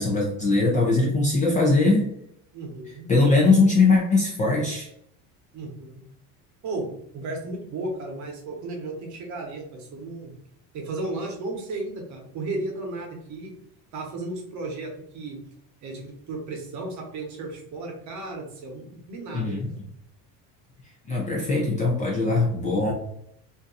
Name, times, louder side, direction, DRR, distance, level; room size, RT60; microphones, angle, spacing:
voice 1, 0.0-2.1 3.1-4.9 19.3-19.7 21.1-22.9, left 3 dB, 20° left, -3 dB, 0.4 m, -21 dB
voice 2, 2.5-3.1 5.5-6.0 6.6-6.9 7.1-10.3 10.7-13.5 13.9-15.4 15.8-19.6, right 2 dB, 45° right, 1 dB, 0.9 m, -34 dB
2.6 x 2.2 x 3.8 m, 0.74 s
cardioid pair, 150°, 40 cm